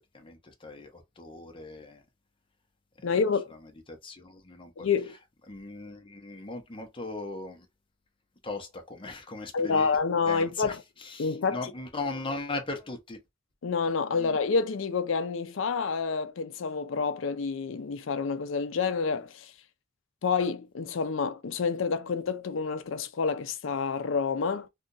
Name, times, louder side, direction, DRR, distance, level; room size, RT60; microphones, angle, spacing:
voice 1, 0.1-2.0 3.9-4.9 5.5-7.7 8.4-10.0 10.3-10.8 11.0-13.2 14.2-14.3, left 3 dB, 25° left, 0.8 m, -38 dB
voice 2, 3.0-3.5 4.8-5.1 9.5-10.8 11.2-11.7 13.6-19.5 20.2-24.7, left 5 dB, 75° left, 0.5 m, -28 dB
2.7 x 2.5 x 3.8 m
head